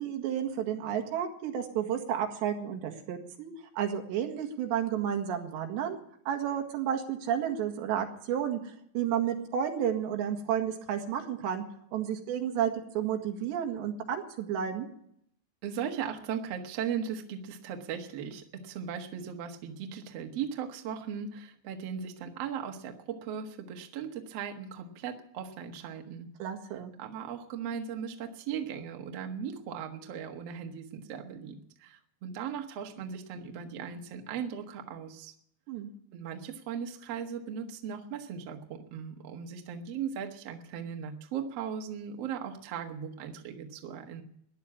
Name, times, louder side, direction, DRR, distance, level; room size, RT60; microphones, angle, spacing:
voice 1, 0.0-6.0 6.3-11.6 11.9-14.9 26.4-26.9 35.7-35.9, right 9 dB, 90° right, 4 dB, 3.9 m, -31 dB
voice 2, 15.6-26.3 27.0-35.3 36.1-44.2, right 7 dB, 60° right, 4 dB, 1.7 m, -38 dB
15.0 x 10.5 x 8.6 m, 0.70 s
omnidirectional pair, 4.9 m